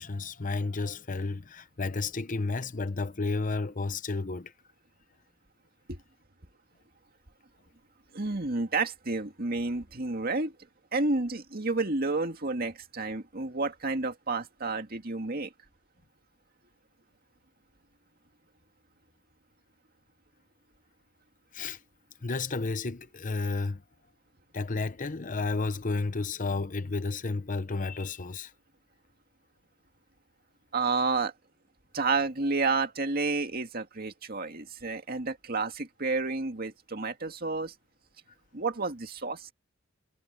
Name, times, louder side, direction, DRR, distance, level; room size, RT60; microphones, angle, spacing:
voice 1, 0.0-4.5 21.5-21.8 22.2-23.8 24.5-28.5, left 3 dB, 40° left, 0.8 m, -32 dB
voice 2, 8.1-10.6 10.9-15.5 30.7-31.3 31.9-37.7 38.5-39.5, right 3 dB, 50° right, 2.2 m, -30 dB
head